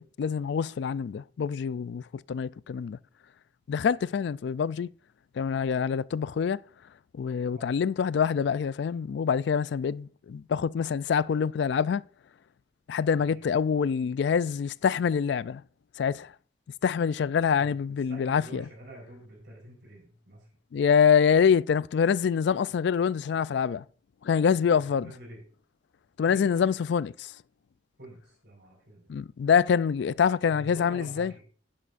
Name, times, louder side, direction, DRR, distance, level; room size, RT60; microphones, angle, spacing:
voice 1, 0.0-2.0 2.3-3.0 3.7-4.9 5.4-6.6 7.2-12.0 12.9-15.6 16.0-16.3 16.8-18.7 20.7-23.8 24.2-25.1 26.2-27.3 29.1-31.3, left 7 dB, 60° left, 0.3 m, -25 dB
voice 2, 18.1-20.5 25.0-25.4 26.3-26.5 28.0-29.1 30.5-31.4, right 1 dB, 60° right, 4.4 m, -47 dB
11.0 x 10.5 x 2.5 m
head